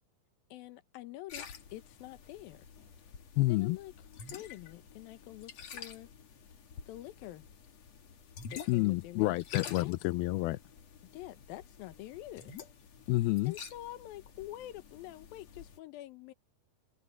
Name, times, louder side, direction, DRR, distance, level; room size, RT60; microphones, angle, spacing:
voice 1, 0.5-2.7 3.5-3.9 4.3-6.1 6.9-7.5 8.5-9.4 9.8-9.9 11.1-12.5 13.5-16.3, left 15 dB, 70° left, 2.5 m, -46 dB
sound 1, 1.3-15.8, left 7 dB, 45° left, 2.5 m, -49 dB
voice 2, 3.4-3.8 8.7-10.6 13.1-13.5, left 19 dB, 85° left, 2.1 m, -29 dB
open air
omnidirectional pair, 5.1 m